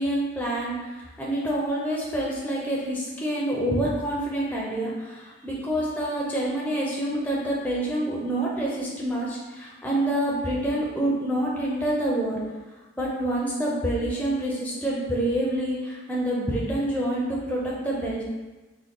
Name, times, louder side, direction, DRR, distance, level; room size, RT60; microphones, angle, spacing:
voice 1, 0.0-12.4 13.0-18.2, right 1 dB, 10° left, -5 dB, 0.5 m, -27 dB
3.7 x 2.1 x 3.6 m, 1.2 s
head